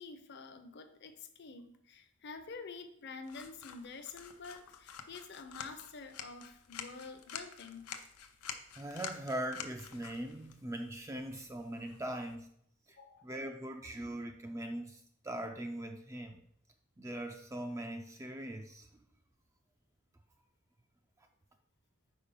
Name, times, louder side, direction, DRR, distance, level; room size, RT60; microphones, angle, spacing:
voice 1, 0.0-7.9 13.0-13.3, left 4 dB, 50° left, 8 dB, 0.7 m, -48 dB
sound 1, 3.2-12.3, left 7 dB, 90° left, 0.7 m, -49 dB
voice 2, 8.7-12.5 12.9-13.0 13.2-16.4 17.0-18.9, right 1 dB, 15° right, 5 dB, 0.3 m, -41 dB
5.1 x 4.9 x 5.4 m, 0.70 s
head